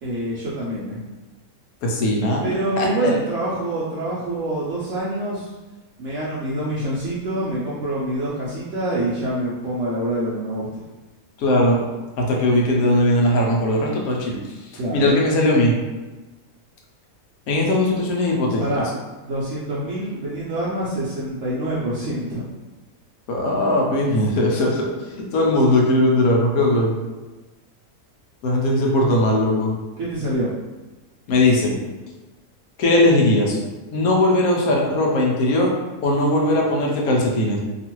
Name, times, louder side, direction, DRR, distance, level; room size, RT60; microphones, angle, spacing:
voice 1, 0.0-1.0 2.4-5.6 6.0-10.9 14.8-15.2 18.6-18.9 19.2-22.4 30.0-30.5, right 1 dB, 65° right, -8 dB, 0.8 m, -26 dB
voice 2, 1.8-3.1 11.4-11.8 12.2-14.4 14.9-15.7 17.5-18.6 23.3-24.9 25.2-26.9 28.4-29.7 31.3-31.7 32.8-33.6 33.9-35.7 36.0-37.6, left 1 dB, 75° left, -1 dB, 1.1 m, -19 dB
2.8 x 2.4 x 2.9 m, 1.2 s
omnidirectional pair, 1.6 m